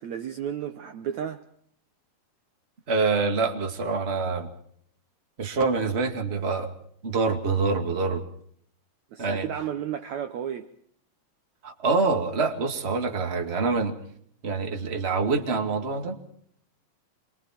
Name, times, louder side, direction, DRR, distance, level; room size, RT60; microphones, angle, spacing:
voice 1, 0.0-1.4 9.1-10.7, right 9 dB, 65° right, 2.0 m, -33 dB
voice 2, 2.9-4.5 5.4-6.7 7.0-8.2 9.2-9.5 11.6-14.0 14.4-16.2, right 4 dB, 25° right, 1.8 m, -26 dB
27.5 x 23.5 x 4.5 m
omnidirectional pair, 4.0 m